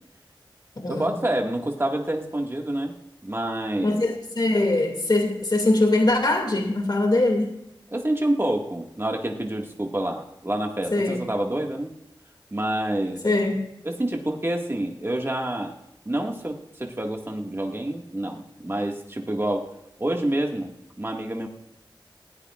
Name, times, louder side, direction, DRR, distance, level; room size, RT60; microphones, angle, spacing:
voice 1, 0.9-2.9 3.2-4.0 7.9-11.9 12.5-13.3 13.8-15.8 16.1-19.7 20.0-21.5, right 1 dB, 30° right, 1 dB, 1.9 m, -27 dB
voice 2, 3.8-7.5 10.9-11.2 13.2-13.6, left 2 dB, 55° left, 2 dB, 2.4 m, -22 dB
19.0 x 15.0 x 2.5 m, 0.85 s
wide cardioid pair, 55°, 9 cm